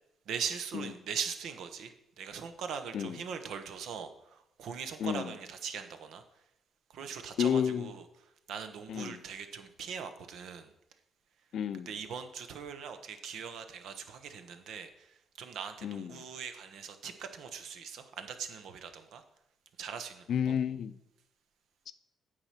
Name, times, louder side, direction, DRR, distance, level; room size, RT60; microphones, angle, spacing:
voice 1, 0.3-6.2 6.9-8.0 8.5-10.7 11.9-19.2 19.8-20.5, right 6 dB, 75° right, 8 dB, 1.0 m, -41 dB
voice 2, 5.0-5.4 7.4-7.9 8.9-9.2 11.5-11.9 15.8-16.3 20.3-20.9 21.9-22.0, left 8 dB, 70° left, 12 dB, 0.5 m, -31 dB
8.9 x 4.9 x 5.8 m, 0.83 s
cardioid pair, 90°, 0 cm